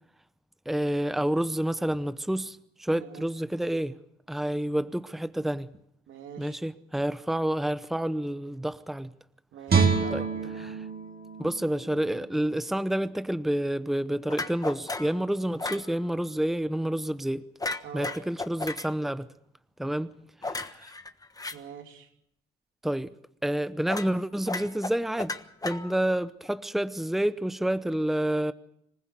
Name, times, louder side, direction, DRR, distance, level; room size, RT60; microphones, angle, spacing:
voice 1, 0.7-4.0 4.3-5.7 6.4-9.1 10.1-10.2 10.6-10.9 11.4-17.4 17.9-19.3 19.8-20.1 20.4-20.9 22.8-23.1 23.4-25.4 25.6-28.5, right 1 dB, ahead, 0.8 m, -29 dB
voice 2, 6.1-6.6 9.5-10.6 17.8-18.1 21.5-22.1, right 7 dB, 85° right, 2.9 m, -43 dB
Guitar, 9.7-12.8 13.2-13.4, right 5 dB, 50° right, 4.0 m, -28 dB
sound 1, 14.3-15.2 15.6-15.9 17.6-18.9 20.4-21.6 23.9-24.2 24.5-26.2, left 3 dB, 20° left, 1.3 m, -34 dB
26.5 x 15.5 x 8.2 m
cardioid pair, 90°, 20 cm